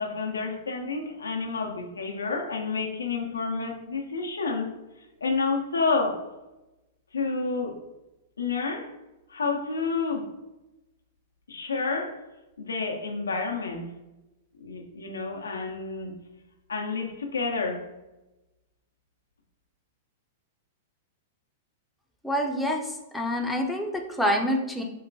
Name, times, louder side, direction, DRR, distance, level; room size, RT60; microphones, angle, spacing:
voice 1, 0.0-4.7 5.2-6.2 7.1-7.8 8.4-8.9 9.3-10.3 11.5-12.2 12.6-13.9 14.6-16.1 16.7-17.9, left 4 dB, 90° left, 2 dB, 0.5 m, -29 dB
voice 2, 22.2-24.8, equal, 5° left, 1 dB, 0.5 m, -27 dB
3.8 x 2.1 x 2.6 m, 1.0 s
hypercardioid pair, 110°, 0 cm